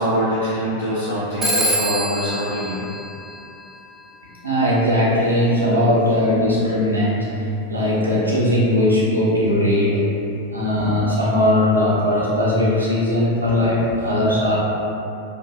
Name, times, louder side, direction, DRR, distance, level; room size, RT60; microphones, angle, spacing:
voice 1, 0.0-2.8, equal, 70° left, -12 dB, 0.7 m, -23 dB
Telephone, 1.4-3.9, right 1 dB, 10° right, 0.3 m, -25 dB
voice 2, 4.4-7.3 7.7-10.0 10.5-14.6, left 1 dB, 80° right, -7 dB, 0.6 m, -19 dB
2.5 x 2.1 x 2.4 m, 2.7 s
figure-of-eight pair, 90°, 0 cm